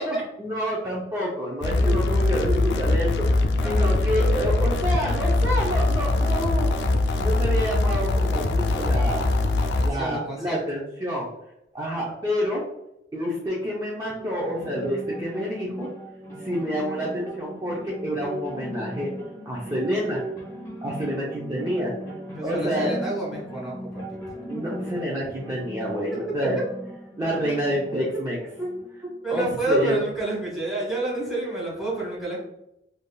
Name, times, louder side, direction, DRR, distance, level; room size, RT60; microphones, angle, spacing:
voice 1, 0.0-6.7 7.2-9.3 9.8-11.3 11.7-12.6 13.1-15.9 16.4-19.1 19.5-20.2 20.8-21.9 22.4-23.0 24.5-26.6 27.2-28.4 29.3-30.0, equal, 20° right, -6 dB, 0.5 m, -28 dB
sound 1, 1.6-9.9, left 2 dB, 85° left, 0.3 m, -22 dB
voice 2, 1.7-2.8 3.6-4.0 9.7-10.6 22.2-24.0 28.6-28.7 29.2-32.4, right 2 dB, ahead, -5 dB, 1.4 m, -29 dB
sound 2, 14.2-29.1, equal, 15° left, 0.9 m, -37 dB
3.4 x 2.6 x 2.3 m, 0.83 s
head